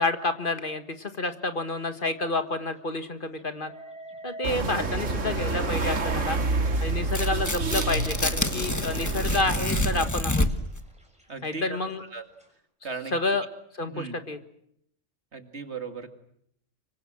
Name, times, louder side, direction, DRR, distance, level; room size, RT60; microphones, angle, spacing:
voice 1, 0.0-3.7 4.2-6.4 6.8-10.5 11.4-12.0 13.1-13.4 13.8-14.4, left 2 dB, 45° left, 9 dB, 1.7 m, -29 dB
sound 1, 1.0-1.3 1.7-2.1 2.5-2.6 3.4-12.5, equal, 5° right, 6.3 m, -45 dB
sound 2, 4.4-10.1, right 3 dB, 85° right, 2.2 m, -28 dB
Tearing, 7.0-10.8, left 1 dB, 15° left, 1.3 m, -28 dB
voice 2, 11.3-12.2 12.8-13.1 13.9-14.2 15.3-16.1, right 4 dB, 60° right, 7 dB, 2.5 m, -37 dB
25.5 x 24.0 x 7.6 m, 0.72 s
omnidirectional pair, 1.3 m